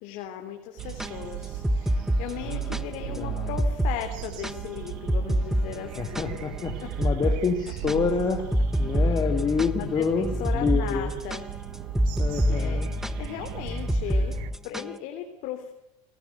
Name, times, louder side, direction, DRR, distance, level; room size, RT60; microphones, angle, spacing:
voice 1, 0.0-6.4 6.8-6.9 9.8-11.4 12.3-12.8 13.2-14.3 14.6-15.7, left 10 dB, 60° left, 4 dB, 3.4 m, -37 dB
sound 1, 0.8-2.8 3.1-3.2 3.6-4.0 4.2-6.6 7.0-7.4 7.7-15.0, equal, 5° right, 0.9 m, -26 dB
sound 2, 0.8-14.5, right 14 dB, 60° right, 1.5 m, -37 dB
voice 2, 2.4-3.6 5.9-8.5 8.8-11.1 12.2-12.9, left 5 dB, 25° left, 4 dB, 2.4 m, -28 dB
26.0 x 18.0 x 8.1 m, 0.86 s
supercardioid pair, 125°, 16 cm